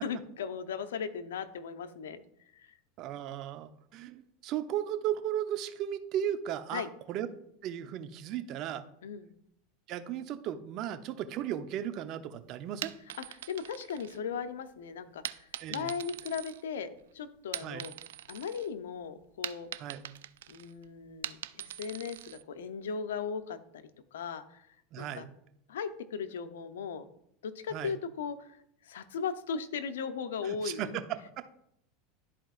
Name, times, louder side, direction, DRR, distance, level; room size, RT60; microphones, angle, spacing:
voice 1, 0.0-2.2 2.5-2.7 6.7-6.9 9.0-9.3 13.2-17.9 18.3-19.7 20.5-24.7 25.0-25.3 25.7-27.0 27.4-28.6 28.8-31.0, left 6 dB, 85° left, 10 dB, 0.7 m, -37 dB
voice 2, 3.0-7.3 7.6-8.8 9.9-12.9 15.6-15.9 17.6-17.9 19.8-20.1 24.9-25.3 27.7-27.9 30.4-31.0 31.4-31.5, right 10 dB, 50° right, 10 dB, 0.7 m, -36 dB
sound 1, 12.7-14.6 15.2-17.0 17.4-18.7 19.0-22.4, right 12 dB, 80° right, 0.3 m, -42 dB
12.5 x 4.4 x 2.5 m, 0.73 s
hypercardioid pair, 100°, 0 cm